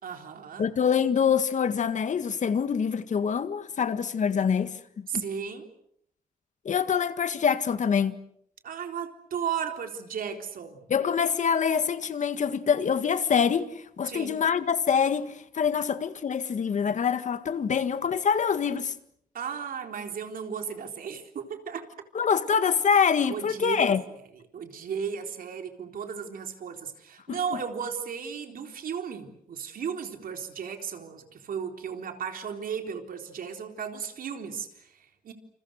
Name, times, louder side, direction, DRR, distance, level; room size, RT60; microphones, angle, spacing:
voice 1, 0.0-0.7 5.1-5.7 8.6-10.9 14.1-14.3 19.3-21.9 23.3-23.9 24.5-35.3, right 7 dB, 75° right, 3.9 m, -35 dB
voice 2, 0.6-5.2 6.6-8.2 10.9-18.9 22.1-24.0 27.3-27.4, left 7 dB, 55° left, 1.8 m, -25 dB
29.0 x 28.5 x 6.5 m
wide cardioid pair, 135°, 15 cm